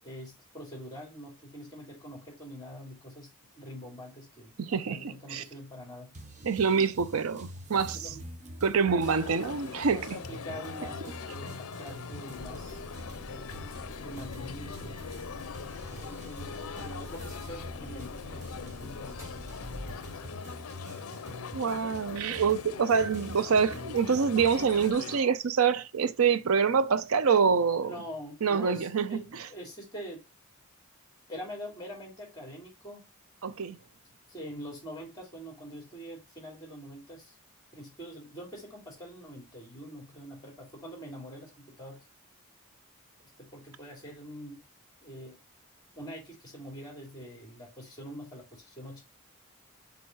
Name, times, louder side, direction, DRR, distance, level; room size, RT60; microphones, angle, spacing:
voice 1, 0.0-6.1 7.9-8.3 8.7-9.1 9.7-12.8 13.2-13.7 14.0-15.0 15.9-19.6 19.9-20.4 27.9-30.2 31.3-33.0 34.3-37.3 37.7-42.0 43.2-44.6 45.0-45.4 45.9-49.0, equal, 20° left, 3.2 m, -45 dB
voice 2, 4.6-5.4 6.4-8.1 8.6-10.2 21.5-27.9 28.4-29.5 33.4-33.8, right 6 dB, 75° right, 0.6 m, -26 dB
sound 1, 6.1-24.9, equal, 35° right, 0.9 m, -46 dB
sound 2, 9.0-25.2, left 6 dB, 90° left, 0.5 m, -42 dB
sound 3, 12.3-20.4, left 1 dB, 15° right, 3.1 m, -46 dB
6.2 x 3.5 x 4.7 m
head